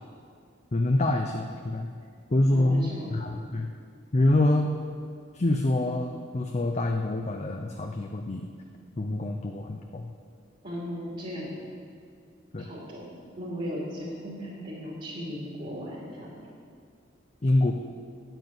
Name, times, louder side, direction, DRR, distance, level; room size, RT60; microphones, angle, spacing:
voice 1, 0.7-1.9 2.3-3.7 4.1-4.8 5.3-8.5 9.0-10.1 12.5-12.7 17.4-17.7, left 1 dB, 35° left, 3 dB, 0.6 m, -26 dB
voice 2, 2.5-3.2 10.6-11.5 12.6-13.0 13.3-16.3, equal, 40° right, -7 dB, 2.9 m, -36 dB
9.8 x 9.0 x 8.1 m, 2.1 s
head